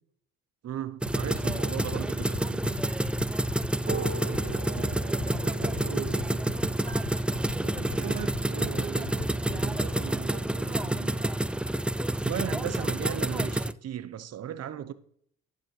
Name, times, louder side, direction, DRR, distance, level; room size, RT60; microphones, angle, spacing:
voice 1, 0.6-2.8 12.2-14.9, right 10 dB, 50° right, 0.9 m, -36 dB
sound 1, 1.0-9.9, left 8 dB, 80° left, 1.3 m, -38 dB
sound 2, 1.0-13.7, right 1 dB, 5° right, 0.3 m, -29 dB
sound 3, 3.7-9.8, right 3 dB, 30° right, 2.3 m, -42 dB
voice 2, 4.2-6.6 7.6-11.3, right 8 dB, 80° right, 2.2 m, -41 dB
11.5 x 9.6 x 3.3 m
supercardioid pair, 70°, 32 cm